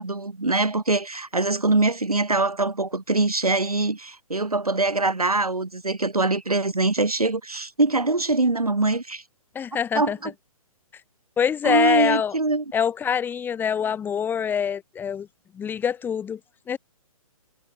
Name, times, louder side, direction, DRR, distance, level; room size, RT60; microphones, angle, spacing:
voice 1, 0.0-9.2 9.9-10.3 11.6-12.6, right 2 dB, 80° right, 4.4 m, -23 dB
voice 2, 9.5-10.2 11.4-12.4 12.7-15.3 15.5-16.4 16.7-16.8, left 7 dB, 10° left, 1.8 m, -25 dB
figure-of-eight pair, 130°, 19 cm